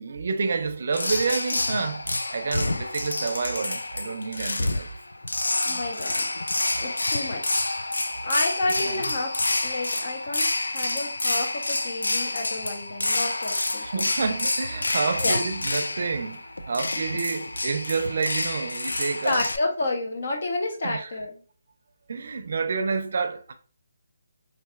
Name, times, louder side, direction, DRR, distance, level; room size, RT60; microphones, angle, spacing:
voice 1, 0.0-4.9 5.7-5.8 8.8-9.1 13.8-19.5 20.8-21.1 22.1-23.5, right 4 dB, 60° right, 0.5 m, -29 dB
sound 1, 0.9-19.6, left 2 dB, 90° left, 0.3 m, -28 dB
voice 2, 5.6-6.3 6.8-7.7 8.2-13.9 15.2-15.4 19.2-21.4, left 2 dB, 55° left, 1.0 m, -30 dB
4.0 x 2.6 x 2.4 m
figure-of-eight pair, 155°, 0 cm